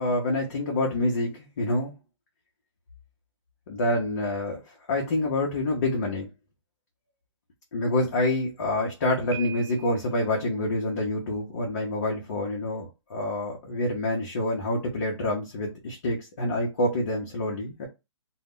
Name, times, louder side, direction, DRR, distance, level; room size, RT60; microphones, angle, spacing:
voice 1, 0.0-1.9 3.7-4.6 4.9-6.3 7.7-17.9, left 1 dB, 35° left, -1 dB, 0.5 m, -27 dB
Piano, 9.3-10.3, right 9 dB, 70° right, 0.8 m, -41 dB
2.0 x 2.0 x 3.6 m, 0.25 s
hypercardioid pair, 170°, 16 cm